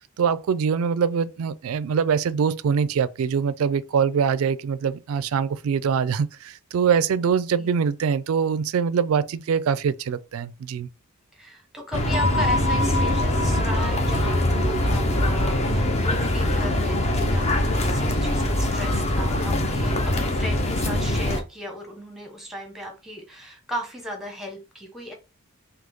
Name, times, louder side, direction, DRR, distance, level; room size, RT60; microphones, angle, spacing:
voice 1, 0.2-10.9, right 6 dB, 70° right, 0.3 m, -23 dB
voice 2, 11.3-25.1, equal, ahead, 1.0 m, -36 dB
sound 1, 11.9-21.4, left 1 dB, 30° left, 0.7 m, -23 dB
sound 2, 12.1-16.8, left 1 dB, 65° left, 0.4 m, -30 dB
3.7 x 2.8 x 3.5 m
head